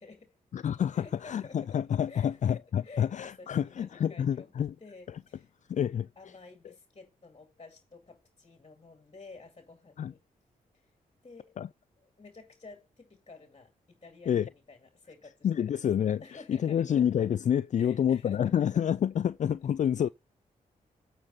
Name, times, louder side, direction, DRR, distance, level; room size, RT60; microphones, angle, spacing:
voice 1, 0.0-0.3 0.9-1.8 2.1-2.4 2.8-4.5 4.8-5.5 6.2-10.2 10.7-10.9 11.2-11.6 12.0-15.8 16.2-16.9 17.7-18.6, left 3 dB, 35° left, 2.3 m, -52 dB
voice 2, 0.5-4.7 5.1-5.2 5.7-6.1 10.0-10.1 11.6-11.7 14.3-14.5 15.4-20.1, left 9 dB, 50° left, 0.4 m, -28 dB
9.0 x 5.6 x 3.9 m
cardioid pair, 65°, 16 cm